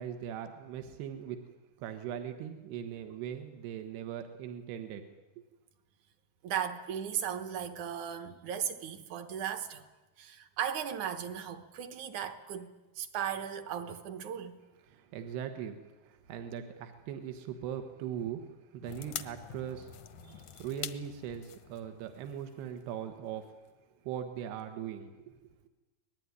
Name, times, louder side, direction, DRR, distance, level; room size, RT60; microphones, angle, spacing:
voice 1, 0.0-1.4 1.8-5.1 5.4-5.5 14.9-18.4 18.7-19.9 20.6-23.5 24.0-25.4, right 9 dB, 85° right, 3.4 m, -40 dB
voice 2, 6.4-9.8 10.2-14.6 20.2-20.4, right 9 dB, 65° right, 2.2 m, -37 dB
sound 1, 18.8-23.4 23.7-23.8, left 10 dB, 70° left, 1.8 m, -45 dB
24.5 x 19.5 x 9.7 m
omnidirectional pair, 4.6 m